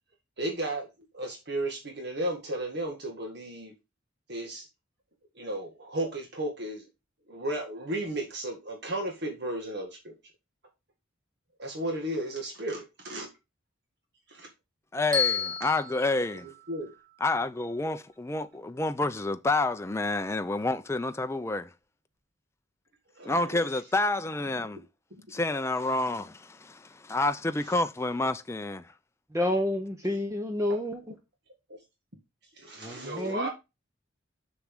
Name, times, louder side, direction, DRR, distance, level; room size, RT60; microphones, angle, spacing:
voice 1, 0.4-0.9 1.1-3.7 4.3-4.7 5.4-6.9 7.3-10.1 11.6-13.3 14.3-14.5 16.7-16.9 23.2-23.7 25.1-25.2 31.7-31.8 32.6-33.5, right 1 dB, 60° right, 1.8 m, -34 dB
voice 2, 14.9-16.5 17.2-21.7 23.3-24.8 25.3-28.9, left 2 dB, 15° left, 0.4 m, -29 dB
Bell, 15.1-17.3, left 6 dB, 40° right, 2.9 m, -32 dB
voice 3, 29.3-31.0 32.8-33.5, left 1 dB, 15° right, 0.8 m, -29 dB
7.3 x 6.0 x 3.6 m
head